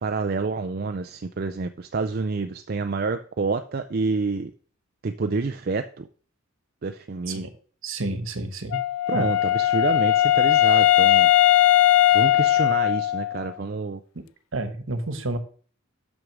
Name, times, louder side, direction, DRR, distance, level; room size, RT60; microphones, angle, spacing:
voice 1, 0.0-4.5 5.0-6.1 6.8-7.4 9.1-11.3 12.1-14.0, right 4 dB, 45° right, 8 dB, 0.4 m, -28 dB
voice 2, 7.8-8.8 9.1-9.3 14.1-14.2 14.5-15.4, right 2 dB, 65° right, 9 dB, 1.3 m, -30 dB
Wind instrument woodwind instrument, 8.7-13.5, left 13 dB, 80° left, 0.4 m, -19 dB
6.3 x 6.3 x 6.1 m, 0.44 s
head